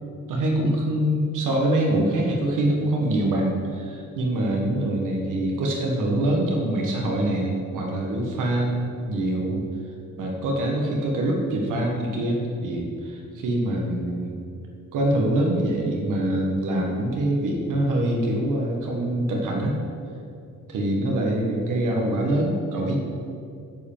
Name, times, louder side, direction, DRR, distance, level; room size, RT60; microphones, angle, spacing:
voice 1, 0.3-9.6 10.2-14.4 14.9-19.8 20.7-23.0, right 1 dB, 90° right, 0 dB, 1.5 m, -24 dB
9.3 x 5.4 x 7.3 m, 2.5 s
wide cardioid pair, 170°, 30 cm